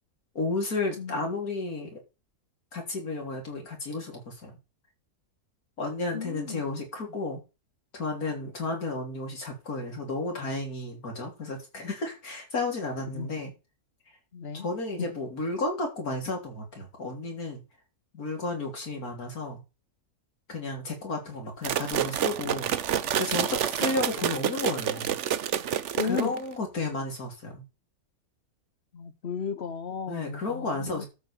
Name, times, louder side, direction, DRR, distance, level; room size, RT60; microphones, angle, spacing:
voice 1, 0.4-2.0 2.7-4.6 5.8-7.4 7.9-13.5 14.5-17.6 18.1-19.6 20.5-22.7 23.2-25.2 26.0-27.6 30.1-31.1, left 2 dB, 70° left, 3.8 m, -32 dB
voice 2, 6.1-6.6 13.1-13.3 14.3-14.6 26.0-26.3 28.9-31.1, left 6 dB, 45° left, 1.1 m, -34 dB
sound 1, 21.6-26.5, right 9 dB, 60° right, 1.0 m, -28 dB
13.0 x 4.9 x 7.1 m
omnidirectional pair, 1.6 m